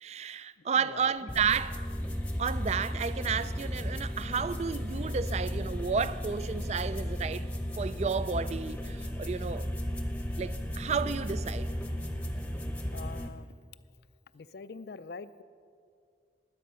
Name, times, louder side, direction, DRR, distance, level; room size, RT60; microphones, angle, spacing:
voice 1, 0.0-1.8 2.4-7.5 7.8-9.7 10.4-11.7, right 6 dB, 35° right, 0.4 m, -32 dB
voice 2, 0.6-1.1 12.9-13.5 14.3-15.4, left 4 dB, 60° left, 0.4 m, -44 dB
sound 1, 1.3-13.3, equal, 5° left, 0.8 m, -35 dB
20.5 x 8.4 x 5.6 m
head